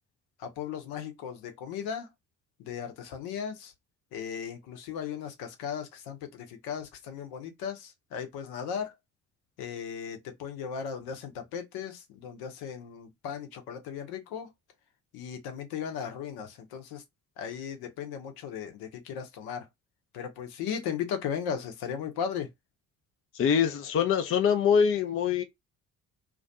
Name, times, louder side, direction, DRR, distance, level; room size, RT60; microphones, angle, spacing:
voice 1, 0.4-2.1 2.6-3.7 4.1-8.9 9.6-14.5 15.1-17.0 17.4-19.7 20.1-22.5, left 7 dB, 60° left, 0.8 m, -36 dB
voice 2, 23.3-25.4, left 7 dB, 35° left, 0.5 m, -24 dB
2.4 x 2.2 x 2.6 m
figure-of-eight pair, 50°, 42 cm